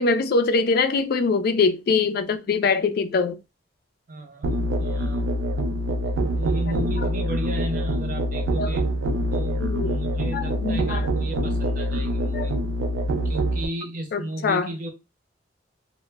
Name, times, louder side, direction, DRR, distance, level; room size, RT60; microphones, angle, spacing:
voice 1, 0.0-3.4 8.6-8.7 9.6-10.0 10.3-11.1 12.3-12.5 14.1-14.7, left 4 dB, 55° left, 0.3 m, -23 dB
voice 2, 4.1-5.3 6.3-8.9 9.3-12.6 13.2-14.9, right 1 dB, 45° right, 0.6 m, -34 dB
Musical instrument, 4.4-13.7, right 1 dB, 85° right, 0.4 m, -25 dB
2.1 x 2.0 x 3.3 m
head